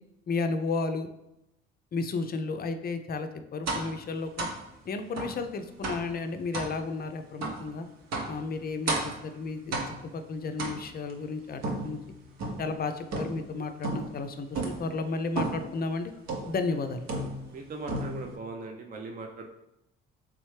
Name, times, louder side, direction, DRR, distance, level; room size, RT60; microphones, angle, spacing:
voice 1, 0.3-1.1 1.9-4.5 4.9-7.9 8.3-12.0 12.6-16.1 16.5-17.1, left 4 dB, 30° left, 8 dB, 0.5 m, -33 dB
sound 1, 3.7-4.0 4.4-4.6 5.2-5.4 5.8-6.1 6.5-6.8 7.4-7.6 8.1-8.4 8.9-9.2 9.7-10.1 10.6-11.1 11.6-12.7 13.1-13.5 13.8-14.2 14.5-14.9 15.4-15.7 16.3-16.6 17.1-17.6 17.9-18.4, right 2 dB, 60° right, 0.9 m, -33 dB
voice 2, 17.5-19.5, right 3 dB, 30° right, 2 dB, 0.5 m, -39 dB
3.5 x 3.1 x 3.2 m, 0.87 s
hypercardioid pair, 55°, 29 cm